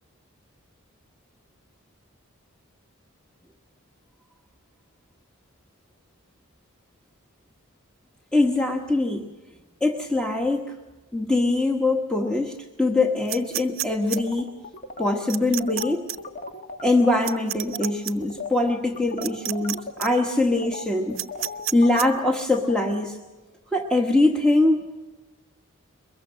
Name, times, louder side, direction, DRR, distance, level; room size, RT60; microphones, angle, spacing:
voice 1, 8.3-9.3 9.8-10.7 11.1-14.5 15.0-16.0 16.8-21.2 21.7-23.2 23.7-24.9, left 2 dB, 5° left, 1 dB, 1.1 m, -22 dB
sound 1, 13.3-14.2 15.3-15.8 16.1-16.2 17.2-18.1 19.2-19.7 20.0-20.1 21.2-22.1, right 14 dB, 65° right, 0.7 m, -29 dB
sound 2, 14.1-17.4 17.7-17.9 18.2-23.0, left 3 dB, 35° left, 1.4 m, -37 dB
23.0 x 21.5 x 6.4 m, 1.2 s
head